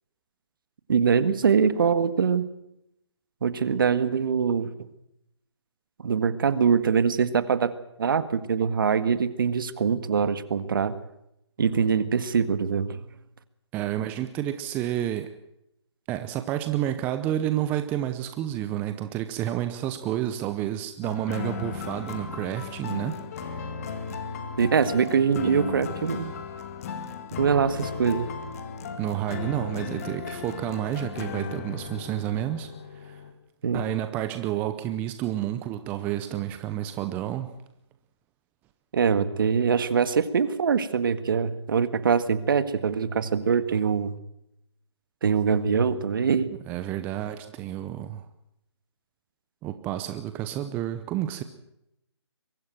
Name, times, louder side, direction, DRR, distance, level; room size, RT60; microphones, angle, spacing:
voice 1, 0.9-2.5 3.4-4.9 6.0-7.7 8.0-10.9 11.6-13.0 24.6-26.3 27.4-28.3 33.6-33.8 38.9-44.1 45.2-46.5, right 6 dB, 50° right, 14 dB, 1.7 m, -23 dB
voice 2, 13.7-15.3 16.1-23.2 29.0-32.7 32.9-33.2 33.7-37.5 46.7-48.2 49.6-51.4, right 12 dB, 10° right, 9 dB, 0.7 m, -30 dB
sound 1, 21.0-33.3, left 5 dB, 35° left, 2.2 m, -36 dB
23.0 x 14.0 x 9.2 m, 0.81 s
hypercardioid pair, 155°, 14 cm